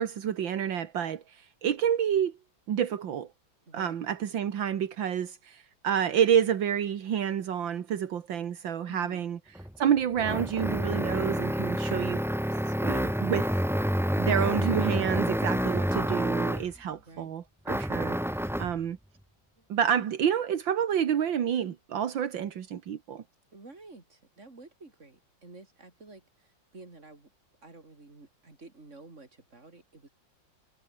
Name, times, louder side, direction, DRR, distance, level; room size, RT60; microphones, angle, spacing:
voice 1, 0.0-2.3 2.7-3.3 3.7-9.4 9.8-12.2 12.8-13.5 14.2-19.0 19.7-23.2, right 9 dB, 80° right, 2.1 m, -29 dB
voice 2, 3.7-4.0 8.9-9.3 16.9-17.3 18.4-18.7 19.6-19.7 23.5-27.3 27.6-30.1, right 3 dB, 35° right, 4.5 m, -50 dB
sound 1, 9.6-16.8 17.7-18.8, equal, ahead, 0.9 m, -28 dB
omnidirectional pair, 2.1 m